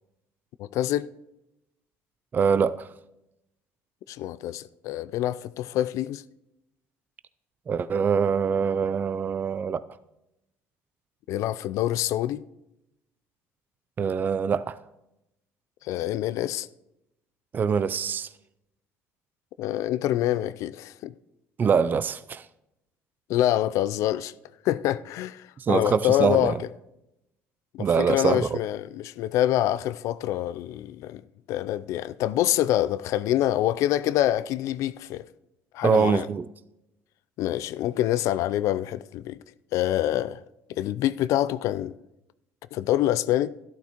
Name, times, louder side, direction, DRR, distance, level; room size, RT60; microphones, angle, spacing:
voice 1, 0.6-1.1 4.1-6.2 11.3-12.4 15.8-16.7 19.6-21.1 23.3-24.3 24.6-26.6 27.7-31.2 31.5-35.2 35.7-36.3 37.4-39.4 39.7-40.4 40.7-42.0 42.7-43.5, left 13 dB, 70° left, 0.3 m, -26 dB
voice 2, 2.3-2.9 7.7-9.8 14.0-14.8 17.5-18.3 21.6-22.4 25.6-26.5 27.8-28.6 35.8-36.5, right 6 dB, 35° right, 0.4 m, -24 dB
13.0 x 11.5 x 2.9 m
supercardioid pair, 85°, 6 cm